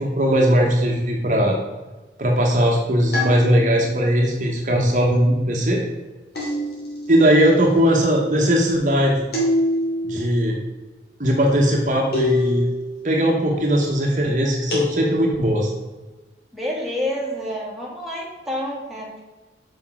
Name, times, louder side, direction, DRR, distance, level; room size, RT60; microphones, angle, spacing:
voice 1, 0.0-1.6 2.2-5.8 7.1-9.2 10.0-10.6 11.2-12.7 13.0-15.7, equal, 45° right, 0 dB, 1.1 m, -19 dB
sound 1, 3.1-4.0 6.3-7.2 9.3-10.2 12.1-13.0 14.7-15.6, left 1 dB, 65° left, 2.7 m, -24 dB
voice 2, 16.5-19.2, left 1 dB, ahead, -5 dB, 1.8 m, -28 dB
5.9 x 5.4 x 6.1 m, 1.2 s
head